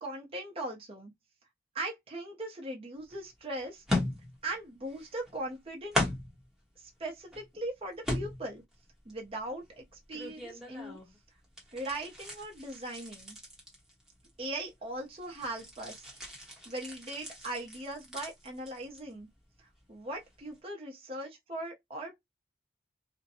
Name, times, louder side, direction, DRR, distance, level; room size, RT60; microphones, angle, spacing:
voice 1, 0.0-1.1 1.7-3.8 4.4-6.0 6.8-8.6 9.0-11.0 11.7-13.4 14.4-16.1 16.7-19.3 19.6-22.3, right 1 dB, 35° right, 0.6 m, -39 dB
sound 1, 3.1-3.2 3.9-4.6 4.9-5.6 5.9-6.4 7.0-7.6 8.0-8.7 9.1-11.2 11.4-14.7 15.0-19.2 19.5-19.8 20.2-20.3, left 1 dB, 5° right, 0.9 m, -37 dB
2.5 x 2.1 x 2.6 m
head